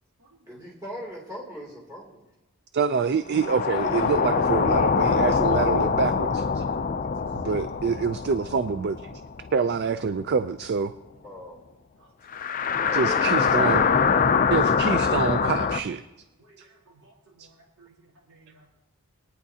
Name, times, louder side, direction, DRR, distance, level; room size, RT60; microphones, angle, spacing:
voice 1, 0.5-2.2 11.2-11.6 12.8-13.9, equal, 15° right, -3 dB, 2.7 m, -38 dB
voice 2, 2.7-6.7 7.3-9.2 9.5-10.9 12.9-13.8 14.5-16.0 17.4-17.5, right 5 dB, 45° right, 12 dB, 0.3 m, -26 dB
sound 1, 3.3-9.9 10.2-10.3 12.3-15.8, left 5 dB, 35° left, 0.4 m, -24 dB
voice 3, 16.4-16.7 17.0-17.9 18.3-18.6, right 2 dB, 80° right, -3 dB, 3.3 m, -56 dB
21.5 x 9.7 x 2.8 m, 1.0 s
head